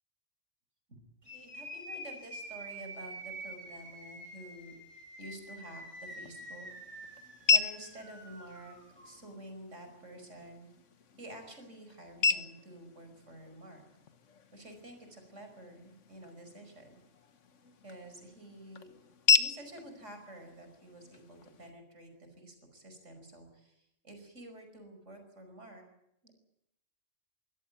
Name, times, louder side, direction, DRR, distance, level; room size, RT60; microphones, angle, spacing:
sound 1, 1.2-9.2, right 1 dB, 25° right, 7.2 m, -47 dB
voice 1, 1.3-4.8 5.2-6.7 7.5-8.8 9.0-10.7 11.2-13.8 14.5-17.0 17.8-18.9 19.4-22.1 22.4-25.8 26.2-26.3, right 1 dB, 80° right, 6 dB, 5.6 m, -49 dB
sound 2, 5.7-21.7, left 5 dB, 85° left, 1.5 m, -35 dB
23.5 x 17.0 x 9.1 m, 0.80 s
omnidirectional pair, 1.2 m